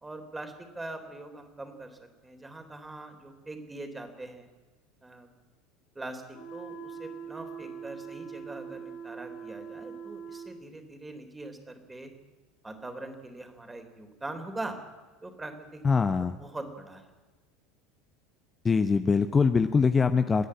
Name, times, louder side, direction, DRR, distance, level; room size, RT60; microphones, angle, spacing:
voice 1, 0.0-4.5 5.0-5.3 6.0-12.1 12.6-14.8 15.2-16.0 16.4-17.1, right 2 dB, 15° right, 6 dB, 3.6 m, -42 dB
sound 1, 6.3-10.6, right 6 dB, 60° left, 3.3 m, -42 dB
voice 2, 15.8-16.4 18.6-20.5, left 5 dB, 25° left, 9 dB, 0.8 m, -23 dB
27.5 x 10.0 x 9.8 m, 1.2 s
figure-of-eight pair, 75°, 0 cm